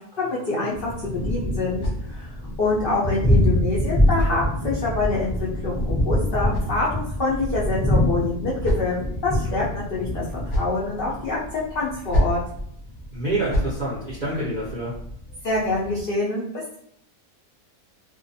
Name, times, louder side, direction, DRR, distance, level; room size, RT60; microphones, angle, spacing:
voice 1, 0.2-2.3 2.6-9.0 9.2-10.3 10.6-12.4 15.4-16.8, left 3 dB, 80° left, -6 dB, 0.5 m, -26 dB
Thunder, 0.7-16.0, left 1 dB, 20° left, 0.5 m, -26 dB
sound 1, 1.4-2.5 3.5-5.0 6.0-7.3 8.1-9.2 10.1-10.8 11.8-12.5 13.2-13.8, equal, 55° left, 0.8 m, -29 dB
voice 2, 13.1-15.0, right 1 dB, 60° right, -8 dB, 0.4 m, -28 dB
2.4 x 2.2 x 2.6 m, 0.68 s
omnidirectional pair, 1.6 m